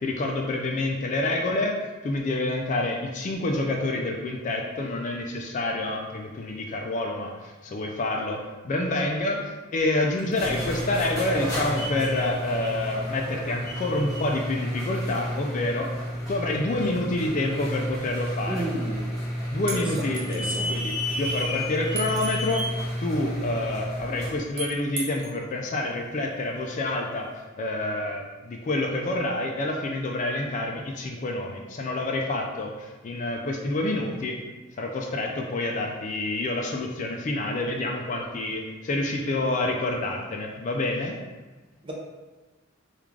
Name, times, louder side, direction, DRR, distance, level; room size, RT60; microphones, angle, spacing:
voice 1, 0.0-15.9 16.3-18.7 19.5-22.7 23.0-27.3 27.6-34.4 34.8-41.1, left 2 dB, 35° left, 1 dB, 0.3 m, -28 dB
sound 1, 10.2-24.4, equal, 15° left, 0.9 m, -31 dB
voice 2, 18.5-19.0 19.6-20.7 41.8-41.9, right 1 dB, 25° right, -2 dB, 0.6 m, -33 dB
sound 2, 19.7-20.7 21.9-22.7 24.6-25.4, right 5 dB, 80° right, 0.7 m, -36 dB
3.5 x 2.4 x 3.1 m, 1.2 s
head